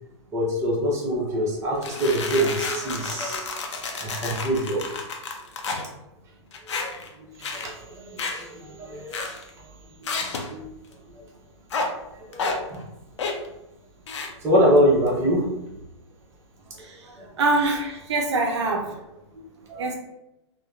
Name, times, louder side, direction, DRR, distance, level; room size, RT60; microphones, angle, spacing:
voice 1, 0.3-3.5 4.0-4.8 6.8-6.9 7.5-7.7 8.0-9.3 10.0-10.1 10.5-10.7 12.3-12.4 12.7-12.8 14.4-15.5 19.7-19.9, equal, 20° right, -4 dB, 0.7 m, -24 dB
sound 1, 1.8-5.9 6.5-7.1 7.4-7.7 8.2-8.5 9.1-9.5 10.0-10.5 11.7-11.9 12.3-12.6 13.2-13.5 14.1-14.3, left 4 dB, 70° left, 0.5 m, -30 dB
voice 2, 17.4-18.9 19.8-19.9, right 2 dB, 70° right, 1 dB, 0.5 m, -23 dB
2.7 x 2.1 x 2.3 m, 0.91 s
hypercardioid pair, 130°, 15 cm